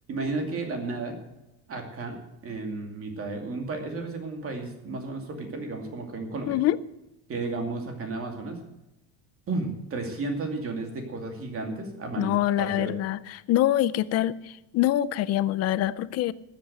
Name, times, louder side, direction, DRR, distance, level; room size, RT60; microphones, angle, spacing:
voice 1, 0.1-1.2 1.7-6.6 7.3-8.6 9.5-12.3 12.6-12.9, right 3 dB, 30° right, 3 dB, 2.6 m, -33 dB
voice 2, 6.5-6.8 12.2-16.3, left 13 dB, 35° left, 17 dB, 0.4 m, -25 dB
13.5 x 8.6 x 7.8 m, 0.95 s
cardioid pair, 160°, 46 cm